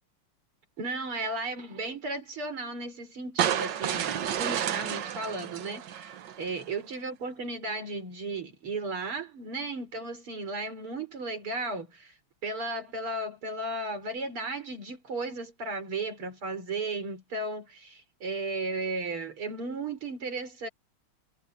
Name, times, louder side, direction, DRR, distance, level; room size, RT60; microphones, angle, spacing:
voice 1, 0.8-6.1 6.4-12.1 12.4-20.7, right 3 dB, 80° right, 5.5 m, -35 dB
sound 1, 3.4-6.6, right 10 dB, 60° right, 1.6 m, -31 dB
omnidirectional pair, 2.4 m